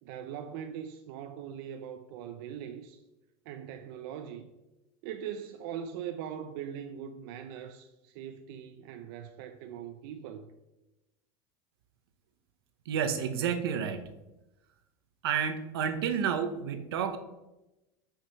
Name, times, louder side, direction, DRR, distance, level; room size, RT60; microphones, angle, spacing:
voice 1, 0.0-3.0 3.5-4.5 5.0-10.5, right 9 dB, 65° right, 0.6 m, -41 dB
voice 2, 12.9-14.0 15.2-17.2, right 7 dB, 90° right, 0.9 m, -30 dB
6.3 x 4.9 x 5.6 m
supercardioid pair, 130°, 12 cm